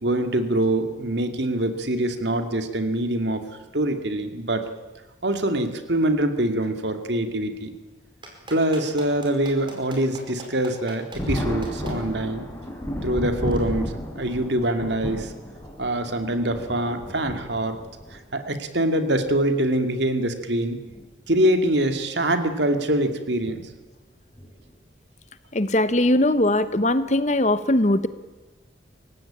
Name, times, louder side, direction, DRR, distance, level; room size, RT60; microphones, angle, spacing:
voice 1, 0.0-3.5 3.7-4.6 5.2-7.7 8.5-12.5 13.0-15.3 15.8-17.8 18.3-20.8 21.3-23.7, right 1 dB, 70° right, 7 dB, 2.4 m, -24 dB
Clapping, 8.2-11.9 13.5-13.6, right 2 dB, 25° right, 5.0 m, -41 dB
Thunder, 11.1-18.2 19.2-19.3 20.8-21.0 21.4-21.5 23.4-23.7 24.4-24.7, equal, 15° left, 4.0 m, -33 dB
voice 2, 25.5-28.1, left 1 dB, 40° left, 13 dB, 1.1 m, -20 dB
28.0 x 16.0 x 8.8 m, 1.3 s
head